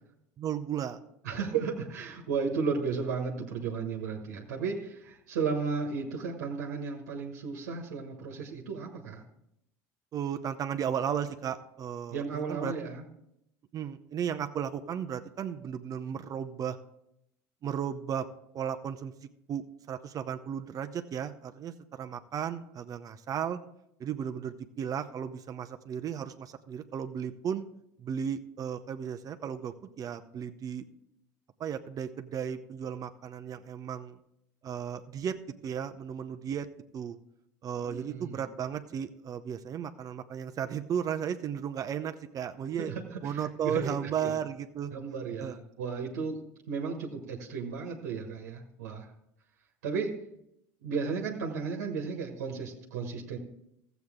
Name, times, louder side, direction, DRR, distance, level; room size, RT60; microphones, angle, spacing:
voice 1, 0.4-1.0 10.1-12.7 13.7-16.8 17.6-18.3 18.5-19.1 19.5-23.6 24.0-27.7 28.0-30.8 31.6-34.2 34.6-35.4 35.6-36.7 36.9-37.2 37.6-42.9 43.2-44.9 45.4-45.6, right 8 dB, 45° right, 8 dB, 0.6 m, -35 dB
voice 2, 1.2-9.2 12.1-13.0 37.8-38.4 42.8-44.3 44.9-46.4 46.7-49.1 49.8-50.1 50.8-53.4, right 5 dB, 90° right, 1 dB, 1.3 m, -34 dB
14.0 x 8.1 x 3.6 m, 0.79 s
hypercardioid pair, 85°, 9 cm